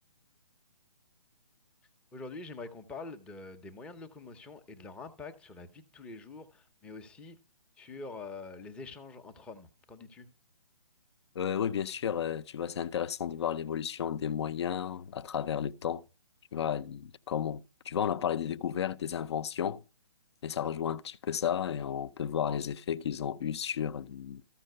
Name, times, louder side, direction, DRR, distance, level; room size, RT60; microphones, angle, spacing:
voice 1, 2.1-7.4 7.8-10.3, left 3 dB, 5° left, 0.6 m, -45 dB
voice 2, 11.3-16.0 16.5-19.8 20.4-24.4, left 8 dB, 50° left, 0.6 m, -33 dB
14.0 x 5.7 x 6.6 m
hypercardioid pair, 155°, 19 cm